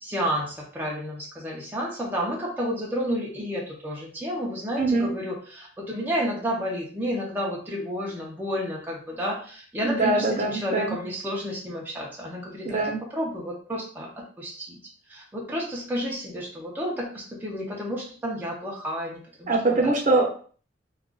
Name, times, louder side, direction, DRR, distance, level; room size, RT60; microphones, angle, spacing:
voice 1, 0.0-12.8 13.1-14.1 14.4-14.8 15.1-19.5, equal, 10° right, -4 dB, 0.5 m, -31 dB
voice 2, 4.8-5.1 9.8-10.9 12.6-13.0 19.5-20.3, right 2 dB, 45° right, -1 dB, 0.7 m, -23 dB
2.3 x 2.3 x 3.7 m, 0.43 s
head